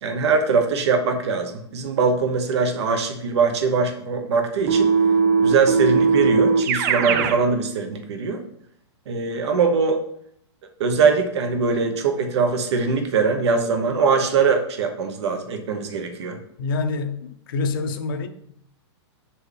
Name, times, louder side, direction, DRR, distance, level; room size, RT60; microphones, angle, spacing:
voice 1, 0.0-4.9 5.4-8.4 9.1-10.0 10.8-16.4, right 5 dB, 70° right, 1.0 m, -22 dB
Keyboard (musical), 4.7-7.4, right 5 dB, 40° right, 0.5 m, -19 dB
voice 2, 16.6-18.3, left 4 dB, 50° left, 0.7 m, -26 dB
7.1 x 4.5 x 3.3 m
hypercardioid pair, 160°, 15 cm